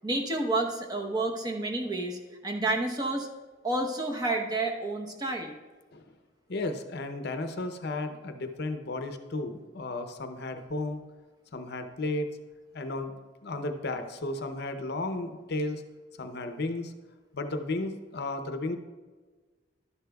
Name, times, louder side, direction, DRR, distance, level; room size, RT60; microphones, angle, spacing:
voice 1, 0.0-3.3 3.6-5.5, right 2 dB, 20° right, 2 dB, 0.9 m, -30 dB
voice 2, 6.5-11.0 11.5-12.3 12.7-13.1 13.4-15.8 16.2-16.9 17.3-18.8, left 2 dB, 60° left, 7 dB, 0.7 m, -33 dB
12.0 x 10.0 x 2.3 m, 1.3 s
head